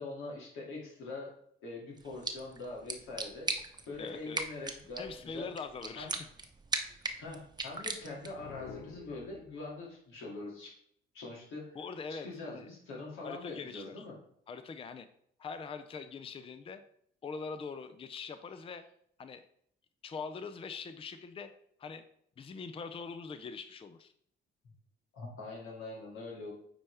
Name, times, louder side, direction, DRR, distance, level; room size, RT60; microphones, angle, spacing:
voice 1, 0.0-1.3 1.6-3.5 3.9-5.5 5.9-6.1 7.2-10.7 11.1-11.8 12.1-14.1 25.1-26.5, left 2 dB, 90° left, -3 dB, 2.5 m, -43 dB
sound 1, 2.0-8.5, right 3 dB, 20° right, 0.8 m, -40 dB
voice 2, 4.0-4.4 5.0-6.3 11.8-12.7 13.2-14.0 14.5-15.1 15.4-16.8 17.2-18.8 19.2-19.4 20.0-21.5 21.8-22.0 22.4-24.1, left 5 dB, 30° left, 10 dB, 0.5 m, -42 dB
sound 2, 8.2-9.8, left 6 dB, 70° left, 0.7 m, -50 dB
8.8 x 4.3 x 3.4 m, 0.68 s
cardioid pair, 90°, 20 cm